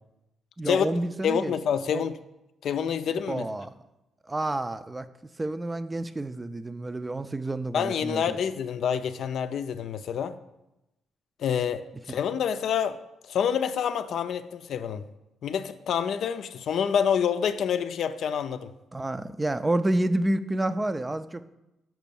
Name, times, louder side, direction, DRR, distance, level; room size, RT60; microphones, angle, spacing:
voice 1, 0.6-1.5 1.9-2.0 3.3-3.7 4.3-5.1 5.4-8.4 12.1-12.2 18.9-21.5, right 1 dB, 15° right, 12 dB, 0.4 m, -29 dB
voice 2, 1.2-2.1 2.6-3.4 7.7-10.3 11.4-13.0 13.3-15.0 15.4-18.7, left 8 dB, 65° left, 11 dB, 0.4 m, -27 dB
6.1 x 5.4 x 6.9 m, 0.95 s
cardioid pair, 90°, 0 cm